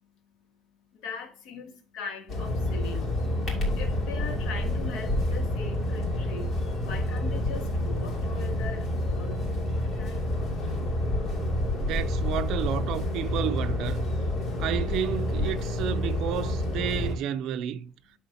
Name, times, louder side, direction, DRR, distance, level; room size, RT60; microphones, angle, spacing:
voice 1, 0.9-3.0 3.7-6.6 6.8-9.4 9.8-10.3, left 5 dB, 75° left, 1.6 m, -40 dB
sound 1, 2.3-17.1, left 1 dB, 40° left, 2.7 m, -28 dB
voice 2, 11.7-14.1 14.6-17.9, right 9 dB, 65° right, 0.6 m, -31 dB
11.5 x 3.8 x 2.8 m
cardioid pair, 155°, 0 cm